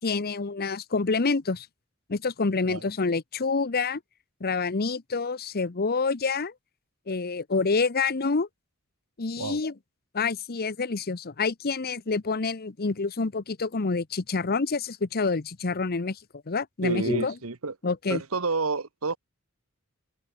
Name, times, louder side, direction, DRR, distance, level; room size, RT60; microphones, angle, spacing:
voice 1, 0.0-1.7 2.1-4.0 4.4-6.5 7.1-8.5 9.2-9.7 10.1-16.2 16.5-17.3 17.8-18.2, left 4 dB, 45° left, 0.8 m, -27 dB
voice 2, 16.8-17.7 18.1-19.2, right 3 dB, 70° right, 1.3 m, -29 dB
open air
head